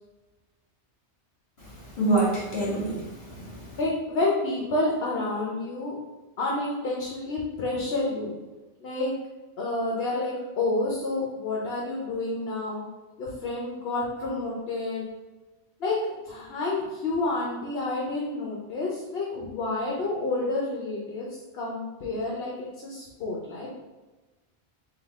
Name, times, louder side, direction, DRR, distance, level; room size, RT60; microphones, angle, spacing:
voice 1, 1.6-3.8, right 2 dB, 50° left, -6 dB, 1.7 m, -27 dB
voice 2, 3.8-6.0 6.4-8.3 8.8-9.1 9.6-12.8 13.2-15.1 15.8-23.8, left 2 dB, 65° left, -3 dB, 0.9 m, -29 dB
3.7 x 2.7 x 3.6 m, 1.2 s
omnidirectional pair, 1.1 m